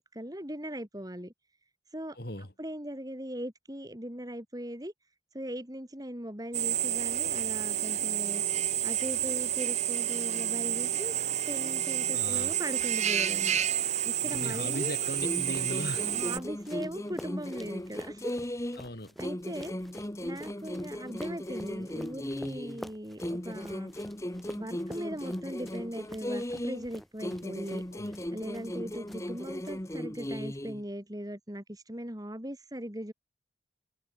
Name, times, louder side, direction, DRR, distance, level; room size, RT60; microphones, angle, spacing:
voice 1, 0.0-1.3 1.9-2.2 2.6-4.9 5.3-8.4 8.8-11.1 11.5-13.6 14.1-14.9 16.1-18.4 19.2-19.7 20.2-23.9 24.5-27.8 28.3-33.1, equal, 20° right, 3.4 m, -39 dB
voice 2, 2.2-2.5 12.1-12.5 14.2-16.1 18.8-19.2 27.9-28.2, left 1 dB, 55° left, 4.0 m, -38 dB
Drill, 6.5-16.4, right 11 dB, 40° right, 1.3 m, -30 dB
sound 1, 12.0-28.8 29.1-29.7, equal, ahead, 4.6 m, -50 dB
sound 2, 15.2-18.9 19.2-22.8 23.2-26.9 27.2-30.8, left 1 dB, 15° left, 1.2 m, -37 dB
head